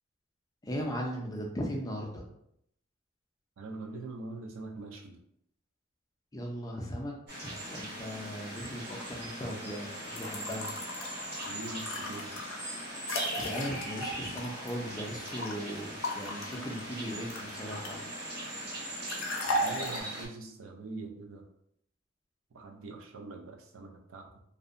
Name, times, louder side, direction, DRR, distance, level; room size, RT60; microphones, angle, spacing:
voice 1, 0.6-2.2 6.3-7.1 7.4-10.7 13.3-18.1, equal, 20° left, 0 dB, 0.3 m, -38 dB
voice 2, 3.6-5.2 11.4-12.3 19.4-21.4 22.5-24.4, right 3 dB, 85° right, 3 dB, 0.4 m, -43 dB
sound 1, 7.3-20.3, right 1 dB, 50° right, 1.3 m, -40 dB
sound 2, 10.0-15.5 16.0-18.1 19.1-20.0, left 1 dB, 80° left, 0.5 m, -36 dB
2.6 x 2.1 x 2.4 m, 0.73 s
head